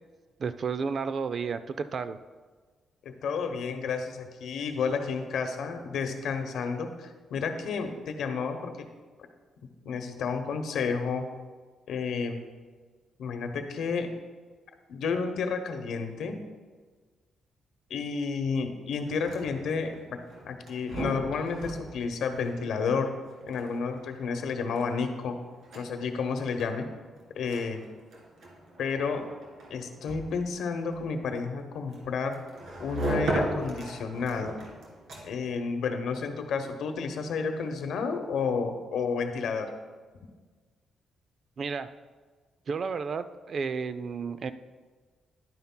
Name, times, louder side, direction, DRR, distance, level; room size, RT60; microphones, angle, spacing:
voice 1, 0.4-2.2 41.6-41.9 42.7-44.5, right 5 dB, 40° right, 12 dB, 0.3 m, -32 dB
voice 2, 3.0-8.9 9.8-11.3 11.9-12.4 13.2-14.1 14.9-16.4 17.9-20.2 20.4-23.1 23.5-25.4 25.8-26.9 27.3-27.8 28.8-29.2 29.7-32.4 32.8-34.6 35.2-39.7, left 5 dB, 75° left, 6 dB, 0.8 m, -31 dB
sound 1, 19.0-35.6, right 1 dB, 55° right, 1.9 m, -38 dB
11.0 x 9.3 x 2.2 m, 1.4 s
cardioid pair, 160°, 0 cm